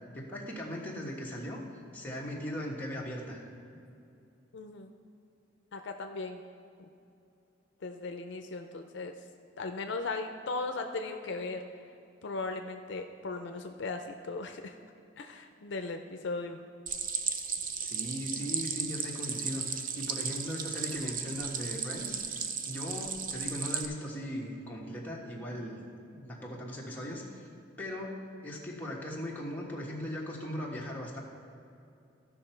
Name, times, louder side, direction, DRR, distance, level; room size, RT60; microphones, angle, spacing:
voice 1, 0.1-1.6 1.9-3.8 17.8-22.2 22.7-25.8 26.1-27.4 27.8-28.2 28.4-31.2, equal, 10° left, -4 dB, 1.3 m, -38 dB
voice 2, 4.5-4.9 5.7-6.4 6.8-6.9 7.8-9.2 9.6-11.6 12.2-14.8 15.2-16.6, left 3 dB, 65° left, 6 dB, 0.5 m, -37 dB
Stream, 16.9-23.9, right 6 dB, 45° right, 0.6 m, -35 dB
15.0 x 5.9 x 4.5 m, 2.6 s
head